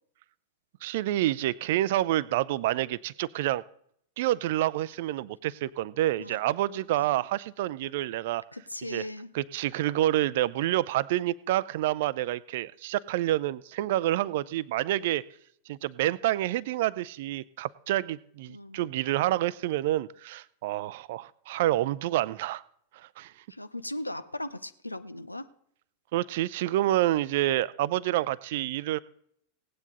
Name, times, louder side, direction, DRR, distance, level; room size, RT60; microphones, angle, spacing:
voice 1, 0.8-3.6 4.2-8.4 8.9-9.0 9.3-15.2 15.7-22.6 22.9-23.3 26.1-29.0, right 14 dB, 50° right, 19 dB, 0.4 m, -28 dB
voice 2, 6.9-7.2 8.5-9.3 18.5-18.9 23.5-25.5, left 1 dB, 85° left, 13 dB, 0.6 m, -38 dB
17.0 x 9.5 x 3.9 m, 0.67 s
figure-of-eight pair, 90°, 0 cm